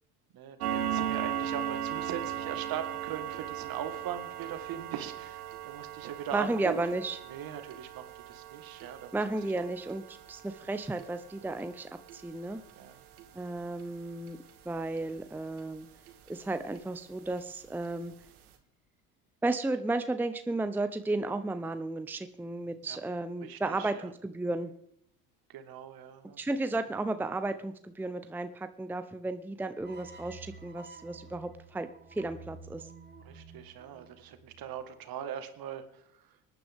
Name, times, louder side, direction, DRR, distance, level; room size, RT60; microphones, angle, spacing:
voice 1, 0.3-6.9 7.2-9.5 12.7-13.0 22.8-23.0 23.4-24.1 25.5-26.4 33.2-36.4, right 9 dB, 55° right, 9 dB, 1.8 m, -41 dB
sound 1, 0.6-15.7 16.1-16.3 16.7-16.8 17.3-17.4 17.8-17.9 18.2-18.4, right 10 dB, 85° right, 1.6 m, -38 dB
voice 2, 6.3-7.2 9.1-12.6 13.3-14.4 14.7-15.9 16.3-18.1 19.4-24.7 26.4-32.9, right 2 dB, 5° right, 10 dB, 0.7 m, -33 dB
sound 2, 29.8-35.0, right 3 dB, 20° right, 2.6 m, -51 dB
25.5 x 9.8 x 3.6 m, 0.71 s
hypercardioid pair, 70°, 43 cm